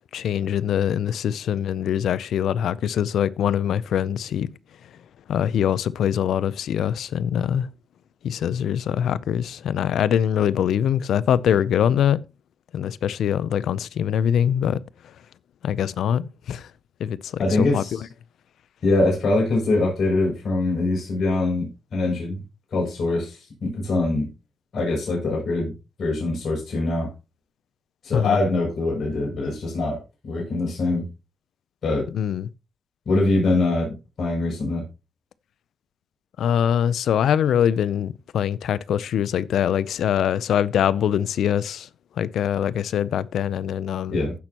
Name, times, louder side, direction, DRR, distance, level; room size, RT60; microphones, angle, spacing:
voice 1, 0.1-4.5 5.3-7.7 8.2-12.2 12.7-14.8 15.6-16.7 17.0-18.0 28.1-28.4 32.1-32.5 36.4-41.9 42.2-44.2, left 9 dB, 80° left, 0.5 m, -23 dB
voice 2, 17.4-18.0 18.8-21.7 21.9-22.4 22.7-24.3 24.7-25.7 26.0-27.1 28.0-31.1 31.8-32.0 33.0-33.9 34.2-34.8 44.1-44.3, left 2 dB, 65° left, 6.6 m, -23 dB
15.5 x 6.1 x 2.9 m
cardioid pair, 70°, 0 cm